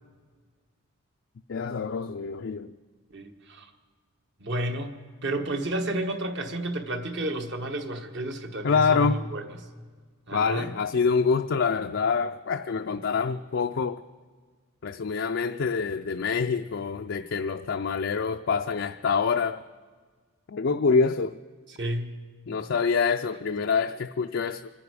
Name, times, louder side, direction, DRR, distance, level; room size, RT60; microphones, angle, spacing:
voice 1, 1.5-2.7 8.6-9.2 10.3-14.0 14.8-19.6 20.5-21.4 22.5-24.7, left 5 dB, 50° left, 0.4 m, -26 dB
voice 2, 3.1-3.7 4.4-4.9 5.2-9.4 10.3-10.7 21.8-22.1, right 1 dB, 50° right, 1.3 m, -31 dB
25.0 x 9.9 x 4.8 m
head